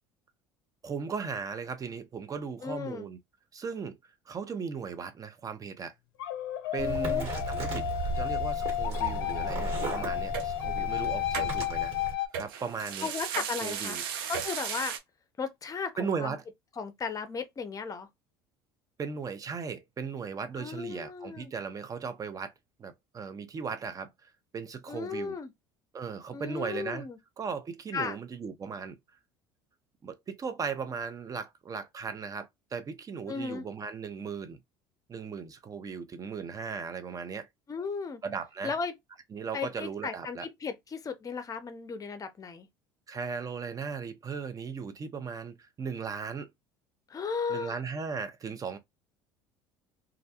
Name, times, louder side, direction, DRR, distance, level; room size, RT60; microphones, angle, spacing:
voice 1, 0.8-3.2 3.5-4.0 4.3-5.9 6.7-11.9 12.3-13.1 13.6-14.0 16.0-16.4 19.0-22.5 22.8-25.4 25.9-27.1 27.4-29.0 30.0-34.6 35.1-37.5 38.2-38.7 39.3-40.5 43.1-46.5 47.5-48.8, right 5 dB, 30° right, 0.6 m, -37 dB
voice 2, 2.6-3.1 6.8-7.3 13.0-14.0 14.3-15.0 15.4-16.4 16.8-18.1 20.6-21.5 24.9-25.5 26.3-27.2 27.9-28.2 33.3-33.7 37.7-38.2 38.6-38.9 39.5-42.7 47.1-47.8, left 5 dB, 30° left, 0.6 m, -35 dB
sound 1, 6.2-12.3, left 14 dB, 75° left, 0.5 m, -32 dB
sound 2, 6.8-12.1, right 4 dB, 55° right, 1.5 m, -35 dB
sound 3, 10.3-10.5 11.3-11.5 12.3-15.0, right 7 dB, 75° right, 0.5 m, -35 dB
2.4 x 2.1 x 2.8 m
hypercardioid pair, 65°, 12 cm